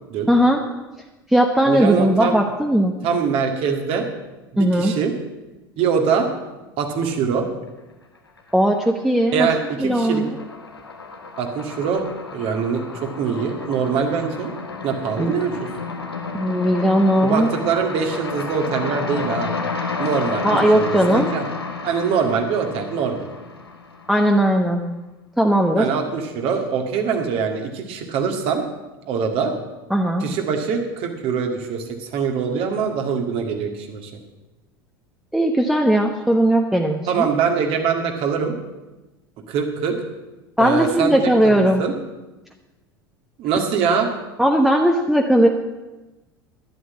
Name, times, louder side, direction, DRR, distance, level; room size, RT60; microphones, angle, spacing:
voice 1, 0.3-0.6 1.3-3.0 4.6-4.9 8.5-9.5 9.8-10.4 15.2-15.3 16.3-17.5 20.4-21.3 24.1-24.8 25.4-25.9 29.9-30.3 35.3-37.3 40.6-41.8 44.4-45.5, right 1 dB, ahead, 2 dB, 1.0 m, -18 dB
voice 2, 1.7-2.4 3.0-4.1 4.5-5.1 5.8-6.3 6.8-7.5 9.3-10.2 11.4-12.0 12.3-14.5 14.8-15.5 17.2-19.5 20.0-21.4 21.8-23.3 25.8-28.6 29.1-29.5 30.2-34.1 37.1-38.5 39.5-39.9 40.6-41.1 41.4-41.9 43.4-44.1, right 6 dB, 50° right, 4 dB, 2.0 m, -23 dB
sound 1, 8.1-8.9 9.2-24.4, left 4 dB, 85° left, 1.4 m, -31 dB
11.0 x 7.9 x 8.3 m, 1.1 s
figure-of-eight pair, 75°, 13 cm